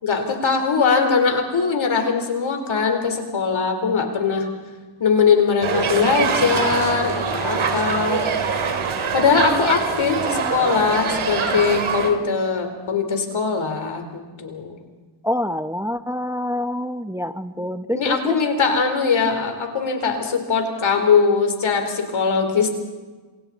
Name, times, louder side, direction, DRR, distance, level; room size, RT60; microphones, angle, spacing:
voice 1, 0.0-4.5 5.0-8.2 9.1-14.8 17.9-22.7, left 5 dB, 75° left, 4 dB, 4.3 m, -21 dB
sound 1, 5.6-12.1, right 5 dB, 85° right, 3.1 m, -24 dB
voice 2, 15.2-18.4, left 1 dB, 5° right, 9 dB, 1.0 m, -26 dB
29.0 x 27.0 x 4.3 m, 1.3 s
cardioid pair, 65°, 47 cm